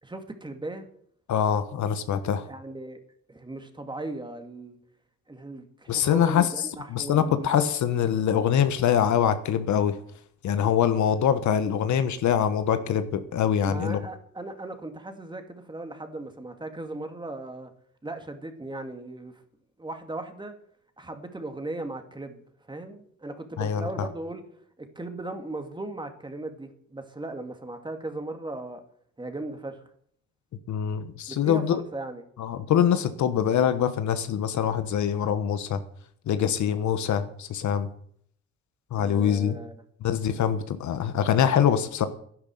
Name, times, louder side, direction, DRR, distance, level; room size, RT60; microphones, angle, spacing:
voice 1, 0.0-0.9 2.5-3.0 3.3-4.8 5.3-7.9 13.6-17.7 18.0-19.4 19.8-20.5 21.0-22.4 22.7-24.4 25.0-28.8 29.2-29.8 31.3-32.2 39.0-39.8, right 2 dB, 15° right, 6 dB, 2.2 m, -37 dB
voice 2, 1.3-2.5 5.9-6.5 6.9-10.0 10.4-14.0 23.6-24.1 30.7-31.8 32.4-35.8 36.3-37.9 38.9-39.6 40.0-42.1, left 8 dB, 70° left, 11 dB, 1.3 m, -24 dB
11.0 x 10.5 x 7.8 m, 0.64 s
cardioid pair, 90°, 30 cm